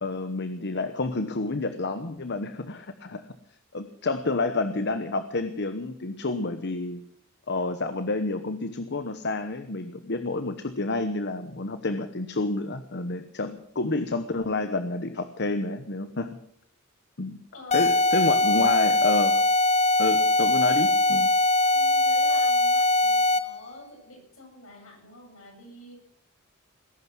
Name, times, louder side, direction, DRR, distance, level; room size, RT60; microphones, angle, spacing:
voice 1, 0.0-3.2 3.7-7.0 7.5-16.4 17.2-17.4 17.7-19.4 20.0-21.3, left 3 dB, 55° left, 10 dB, 1.1 m, -29 dB
voice 2, 17.5-17.9 21.6-25.9, left 2 dB, 70° left, 1 dB, 7.9 m, -46 dB
sound 1, 17.7-23.6, left 1 dB, 30° left, 0.7 m, -21 dB
20.0 x 11.5 x 6.2 m, 0.72 s
head